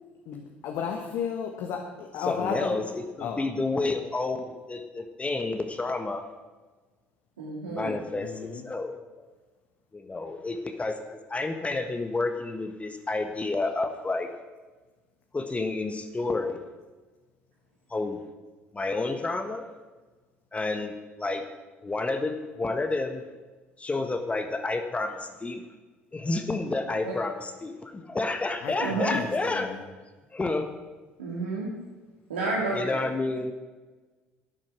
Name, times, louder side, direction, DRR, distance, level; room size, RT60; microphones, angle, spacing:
voice 1, 0.2-2.8 3.2-3.4 8.2-8.6 28.5-29.8, left 6 dB, 60° left, 2 dB, 1.6 m, -33 dB
voice 2, 2.3-6.2 7.7-9.0 9.9-14.3 15.3-16.6 17.9-18.2 18.7-19.7 20.5-21.4 21.8-23.2 23.8-25.6 26.1-29.7 30.3-30.7 32.7-33.5, left 3 dB, 20° left, 6 dB, 1.4 m, -30 dB
voice 3, 7.4-8.0 27.0-27.1 28.8-29.1 31.2-31.7 32.3-33.0, right 3 dB, 85° right, -6 dB, 2.4 m, -30 dB
12.5 x 10.5 x 6.1 m, 1.3 s
figure-of-eight pair, 60°, 6 cm